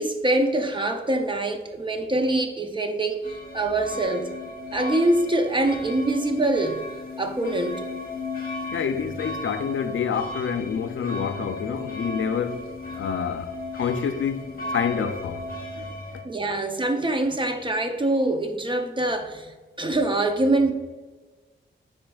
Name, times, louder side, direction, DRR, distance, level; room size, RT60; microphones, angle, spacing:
voice 1, 0.0-4.3 4.7-6.8 7.2-7.8 16.2-19.5 19.8-20.7, right 2 dB, 25° right, 0.5 m, -24 dB
sound 1, 3.2-16.2, left 2 dB, 50° left, 1.0 m, -35 dB
voice 2, 8.7-12.7 12.9-15.5 15.8-16.2, left 7 dB, 75° left, 0.4 m, -28 dB
9.3 x 4.3 x 2.3 m
wide cardioid pair, 155°, 20 cm